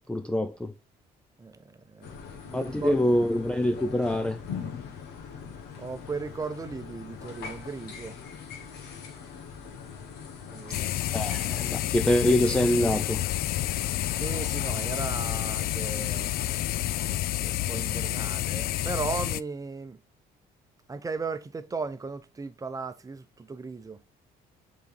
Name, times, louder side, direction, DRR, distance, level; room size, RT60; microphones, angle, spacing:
voice 1, 0.1-0.7 2.5-4.4 11.1-13.2, left 1 dB, 5° left, 0.5 m, -25 dB
voice 2, 1.4-2.1 2.4-3.0 5.8-8.2 10.5-10.9 14.2-16.4 17.4-20.0 20.9-24.0, right 4 dB, 20° right, 0.8 m, -36 dB
sound 1, 2.0-17.2, left 6 dB, 80° left, 1.7 m, -42 dB
sound 2, 10.7-19.4, left 15 dB, 65° left, 0.4 m, -29 dB
6.9 x 4.2 x 3.8 m
cardioid pair, 110°, 17 cm